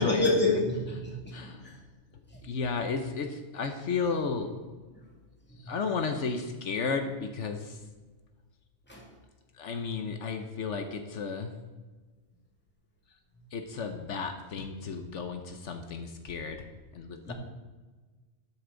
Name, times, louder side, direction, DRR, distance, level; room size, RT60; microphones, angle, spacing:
voice 1, 0.0-1.7 5.7-5.8 8.9-9.0 17.3-17.4, left 2 dB, 10° left, -3 dB, 2.3 m, -28 dB
voice 2, 1.3-1.6 2.4-4.5 5.7-7.8 9.6-11.5 13.5-16.6 16.9-17.3, left 5 dB, 75° left, 6 dB, 1.2 m, -33 dB
12.0 x 8.3 x 3.8 m, 1.3 s
omnidirectional pair, 1.3 m